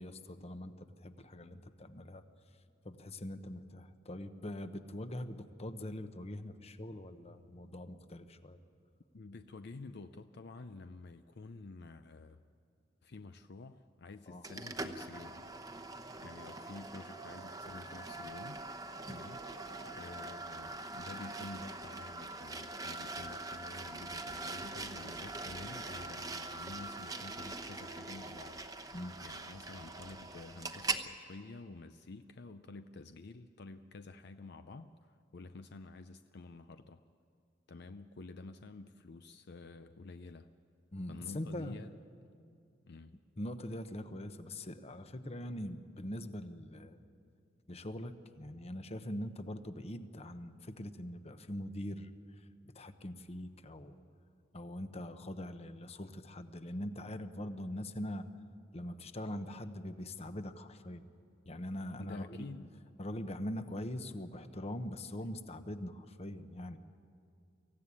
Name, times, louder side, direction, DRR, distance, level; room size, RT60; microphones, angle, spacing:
voice 1, 0.0-2.2 2.8-8.6 14.3-14.4 28.9-29.2 40.9-41.8 43.4-47.0 47.7-52.5 52.7-54.0 54.5-58.2 58.7-61.1 61.5-62.5 63.0-66.8, left 1 dB, 35° left, 10 dB, 1.0 m, -42 dB
voice 2, 9.1-12.4 13.0-15.5 16.2-18.6 19.0-19.4 20.0-28.6 29.2-37.0 37.7-40.5 41.1-41.9 42.9-43.2 62.0-62.7, left 3 dB, 60° left, 9 dB, 0.6 m, -50 dB
sound 1, 14.4-31.1, right 2 dB, 20° right, 0.9 m, -43 dB
24.5 x 15.5 x 9.8 m, 2.5 s
head